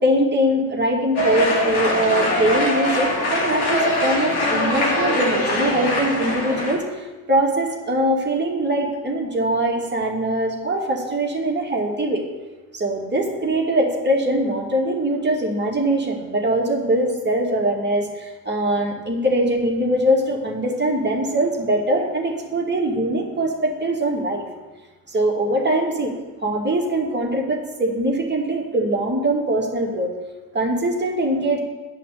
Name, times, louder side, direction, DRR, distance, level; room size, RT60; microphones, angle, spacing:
voice 1, 0.0-6.8 7.3-12.2 12.7-24.5 25.1-26.1 26.4-30.1 30.5-31.6, right 1 dB, 20° right, -1 dB, 2.4 m, -22 dB
sound 1, 1.2-6.7, left 1 dB, 50° left, 2.7 m, -22 dB
9.0 x 5.8 x 8.1 m, 1.2 s
figure-of-eight pair, 45°, 48 cm